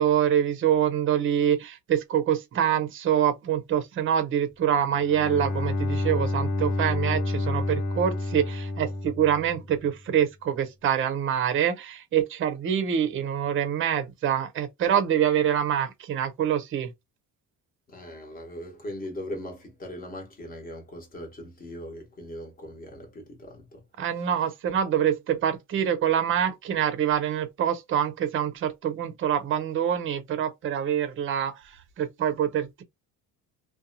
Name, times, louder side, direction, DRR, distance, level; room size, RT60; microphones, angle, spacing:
voice 1, 0.0-16.9 24.0-32.8, right 9 dB, 35° right, 0.6 m, -25 dB
Bowed string instrument, 4.9-9.9, left 2 dB, 60° left, 0.8 m, -29 dB
voice 2, 17.9-23.8, left 1 dB, 25° left, 0.9 m, -39 dB
2.7 x 2.2 x 2.5 m
cardioid pair, 150°, 34 cm